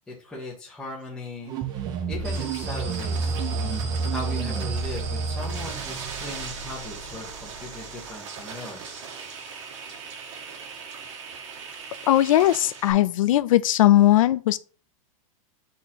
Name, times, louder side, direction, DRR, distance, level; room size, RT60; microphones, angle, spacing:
voice 1, 0.1-1.5 2.1-3.3 4.1-9.0, left 2 dB, 5° left, 1.1 m, -38 dB
sound 1, 1.4-8.1, right 4 dB, 20° right, 0.6 m, -30 dB
sound 2, 2.2-12.9, right 5 dB, 60° right, 2.0 m, -39 dB
voice 2, 12.1-14.6, left 14 dB, 70° left, 0.5 m, -19 dB
8.1 x 4.3 x 2.9 m
supercardioid pair, 170°, 18 cm